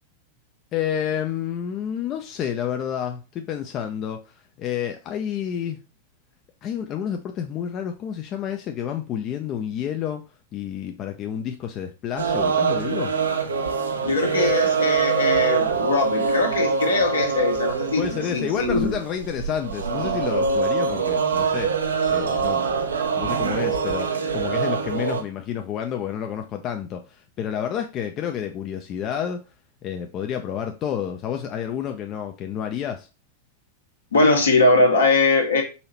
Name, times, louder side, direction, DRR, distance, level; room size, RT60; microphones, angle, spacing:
voice 1, 0.7-5.8 6.6-10.2 10.5-13.1 18.0-22.6 23.2-29.4 29.8-33.1, left 9 dB, 35° left, 0.5 m, -29 dB
sound 1, 12.2-25.2, right 5 dB, 75° right, 0.6 m, -24 dB
voice 2, 14.0-18.0 18.3-19.0 34.1-35.6, left 3 dB, 70° left, 1.3 m, -21 dB
4.2 x 2.8 x 4.3 m
figure-of-eight pair, 90°, 0 cm